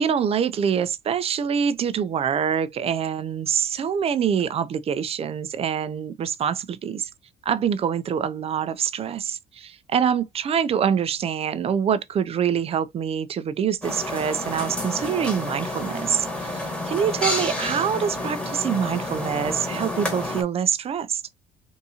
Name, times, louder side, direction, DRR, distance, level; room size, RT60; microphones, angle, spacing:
voice 1, 0.0-7.1 7.5-21.2, right 8 dB, 35° right, 0.4 m, -25 dB
sound 1, 13.8-20.4, left 1 dB, 5° left, 1.3 m, -29 dB
3.5 x 2.7 x 2.7 m
cardioid pair, 110°, 17 cm